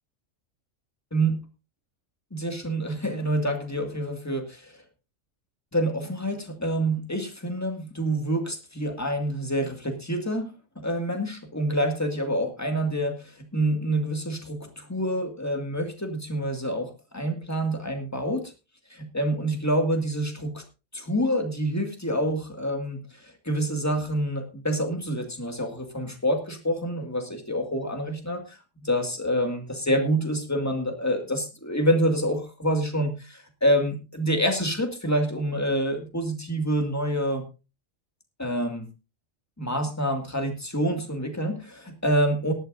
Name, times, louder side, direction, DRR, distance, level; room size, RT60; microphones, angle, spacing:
voice 1, 2.3-4.7 5.7-10.5 10.8-18.5 18.9-20.6 20.9-37.4 38.4-38.9 39.6-42.5, equal, 10° left, 4 dB, 2.1 m, -27 dB
18.0 x 12.0 x 2.6 m, 0.29 s
omnidirectional pair, 1.3 m